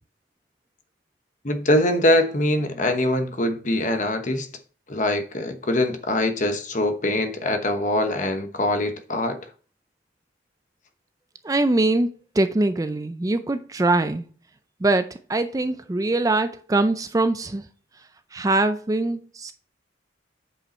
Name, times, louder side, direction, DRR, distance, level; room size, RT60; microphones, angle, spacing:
voice 1, 1.4-4.5 4.9-9.4, left 1 dB, 40° left, 1.0 m, -23 dB
voice 2, 11.4-14.2 14.8-17.7 18.3-19.5, right 2 dB, 20° right, 0.4 m, -23 dB
8.7 x 5.3 x 4.3 m
head